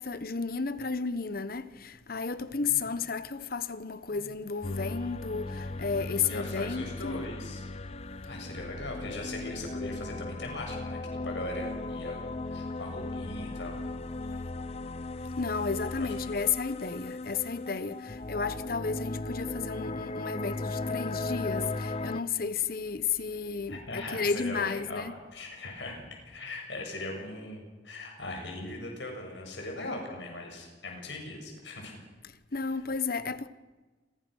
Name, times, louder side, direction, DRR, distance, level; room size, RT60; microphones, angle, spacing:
voice 1, 0.0-7.3 15.4-25.1 32.2-33.5, left 5 dB, 55° left, 1.2 m, -33 dB
sound 1, 4.6-22.2, left 2 dB, 35° left, 0.8 m, -37 dB
voice 2, 6.3-7.6 8.3-13.8 16.0-16.1 23.7-25.0 25.3-32.0, left 2 dB, 85° left, 7.4 m, -39 dB
28.5 x 23.0 x 6.5 m
head